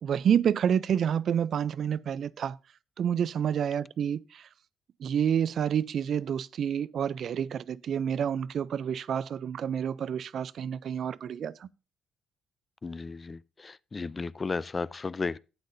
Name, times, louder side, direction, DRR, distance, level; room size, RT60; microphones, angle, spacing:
voice 1, 0.0-2.6 3.0-4.5 5.0-11.7, right 8 dB, 60° right, 0.4 m, -28 dB
voice 2, 12.8-15.4, left 4 dB, 30° left, 0.3 m, -34 dB
12.0 x 8.5 x 2.6 m
cardioid pair, 90°, 0 cm